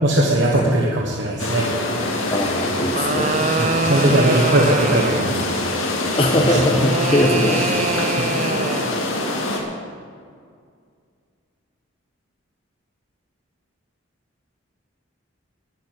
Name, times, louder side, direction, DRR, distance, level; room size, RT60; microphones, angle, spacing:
voice 1, 0.0-1.7 3.6-5.6 8.2-8.3, right 1 dB, 60° right, -2 dB, 1.3 m, -19 dB
sound 1, 1.4-9.6, left 2 dB, 80° left, 2.2 m, -24 dB
voice 2, 2.3-3.5 6.2-7.7 8.3-8.7, left 1 dB, 25° left, 1 dB, 1.1 m, -21 dB
sound 2, 2.6-5.5 6.5-9.1, right 4 dB, 35° right, 0.4 m, -25 dB
11.0 x 7.5 x 9.5 m, 2.1 s
head